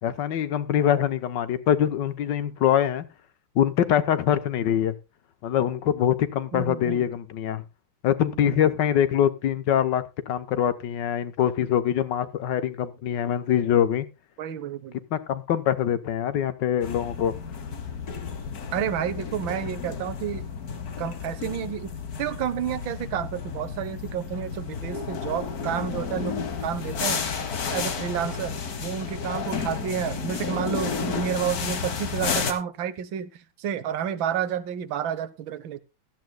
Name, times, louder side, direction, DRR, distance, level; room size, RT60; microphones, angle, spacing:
voice 1, 0.0-3.1 3.5-4.9 5.4-7.6 8.0-14.1 15.1-17.3, left 10 dB, 70° left, 1.5 m, -24 dB
voice 2, 6.5-7.0 8.3-8.6 14.4-15.0 18.7-20.4 21.0-21.9 22.2-26.4 26.6-28.6 28.8-35.8, right 9 dB, 75° right, 1.7 m, -30 dB
sound 1, 16.8-32.5, left 5 dB, 50° left, 1.7 m, -32 dB
17.0 x 11.5 x 2.3 m
omnidirectional pair, 2.2 m